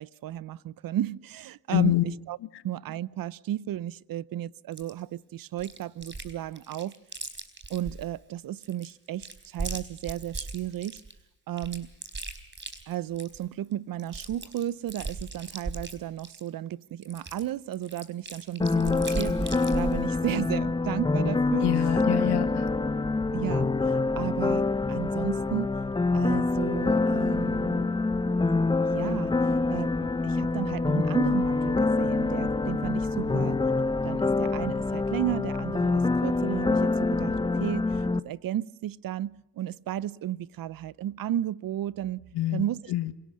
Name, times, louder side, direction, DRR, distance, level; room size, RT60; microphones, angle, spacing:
voice 1, 0.0-2.4 2.6-6.9 7.7-11.0 11.5-11.9 12.9-21.7 23.3-25.7 26.1-27.9 28.9-29.3 29.7-33.6 34.0-42.2 42.5-42.9, right 12 dB, 55° right, 0.7 m, -34 dB
voice 2, 1.7-2.0 21.6-22.7 33.2-33.3 42.3-43.1, left 14 dB, 75° left, 1.6 m, -26 dB
Chewing mastication, 4.7-4.9 5.6-6.3 6.6-8.1 8.6-11.1 11.6-13.4 13.7-13.8 14.0-16.5 17.0-20.0, right 3 dB, 25° right, 4.2 m, -37 dB
sound 1, 18.6-38.2, left 3 dB, 10° left, 0.7 m, -26 dB
26.5 x 18.0 x 6.3 m
supercardioid pair, 70°, 41 cm